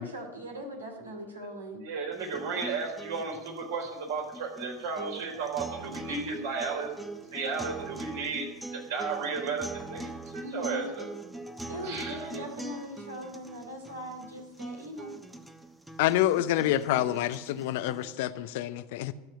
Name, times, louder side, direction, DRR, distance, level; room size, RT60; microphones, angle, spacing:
voice 1, 0.0-1.8 6.1-6.4 10.4-10.9 11.7-15.1, equal, 85° right, 2.4 m, -40 dB
voice 2, 1.8-6.9 7.3-11.1 11.8-12.3, right 5 dB, 65° right, 4.4 m, -34 dB
sound 1, 2.1-18.1, right 2 dB, 5° right, 1.0 m, -42 dB
voice 3, 16.0-19.1, left 13 dB, 60° left, 0.6 m, -27 dB
13.0 x 7.3 x 9.3 m
figure-of-eight pair, 80°, 0 cm